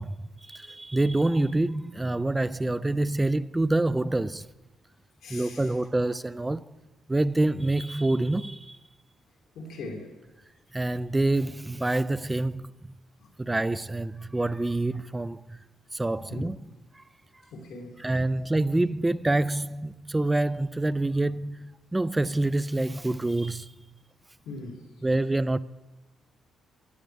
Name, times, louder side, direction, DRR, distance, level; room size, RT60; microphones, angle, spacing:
voice 1, 0.0-4.5 5.3-6.7 7.1-8.8 10.7-12.7 13.4-15.6 15.9-16.6 17.0-17.1 18.0-23.7 25.0-25.6, right 2 dB, 15° right, 0.4 m, -26 dB
voice 2, 5.2-5.7 9.5-10.1 16.3-16.5 17.5-18.0 24.4-24.8, left 2 dB, 85° left, 2.8 m, -39 dB
16.5 x 11.0 x 3.5 m
cardioid pair, 90°, 0 cm